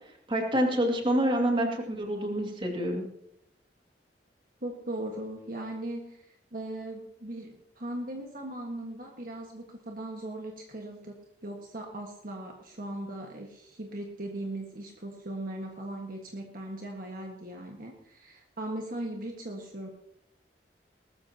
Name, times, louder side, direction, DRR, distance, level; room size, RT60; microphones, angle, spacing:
voice 1, 0.3-3.0, right 1 dB, 30° right, 1 dB, 2.3 m, -27 dB
voice 2, 4.6-19.9, right 1 dB, 50° right, 1 dB, 1.6 m, -39 dB
19.5 x 13.5 x 2.9 m, 0.74 s
head